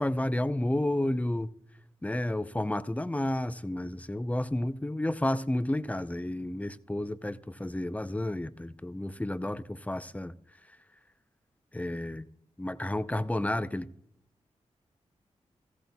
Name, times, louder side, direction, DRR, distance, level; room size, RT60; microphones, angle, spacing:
voice 1, 0.0-1.5 2.0-10.3 11.7-12.2 12.6-13.9, left 1 dB, 10° left, 0.6 m, -31 dB
15.5 x 14.0 x 2.3 m
cardioid pair, 40°, 13 cm